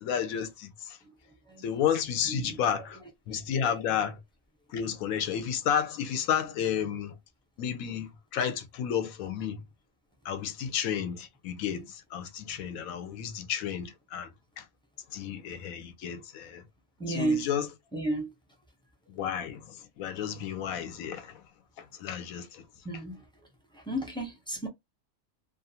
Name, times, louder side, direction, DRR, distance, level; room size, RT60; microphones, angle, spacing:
voice 1, 0.0-1.0 1.6-3.0 3.3-4.2 4.7-7.2 7.6-9.6 10.2-14.3 14.6-14.7 15.1-16.6 17.1-17.7 19.1-21.4 21.8-22.6, left 8 dB, 90° left, 1.1 m, -32 dB
voice 2, 2.2-2.6 3.6-3.7 17.0-17.4 17.9-18.3 22.8-23.2 23.7-24.7, right 2 dB, 5° left, 0.6 m, -32 dB
2.5 x 2.4 x 2.7 m
omnidirectional pair, 1.4 m